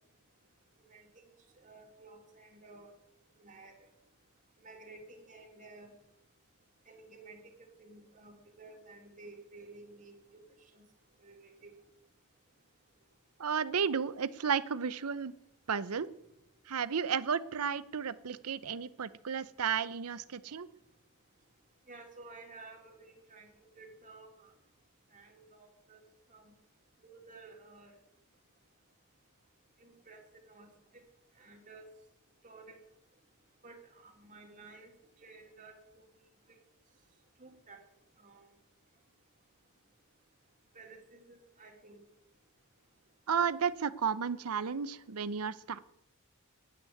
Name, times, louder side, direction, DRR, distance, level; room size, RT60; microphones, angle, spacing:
voice 1, 0.8-1.3 1.6-2.9 3.4-3.8 4.6-5.9 6.9-7.5 7.8-10.1 10.7-10.9 11.2-11.7 21.9-24.5 25.1-26.0 26.3-26.5 27.0-27.9 29.8-30.7 31.4-31.8 32.4-32.8 33.6-34.9 35.2-36.0 37.4-37.8 38.2-38.5 40.7-42.0 43.4-43.5, right 3 dB, 35° right, 3 dB, 2.6 m, -53 dB
voice 2, 13.4-15.3 15.7-16.1 16.7-20.7 43.3-45.8, right 6 dB, 85° right, 17 dB, 0.7 m, -33 dB
9.5 x 9.3 x 9.6 m, 0.83 s
head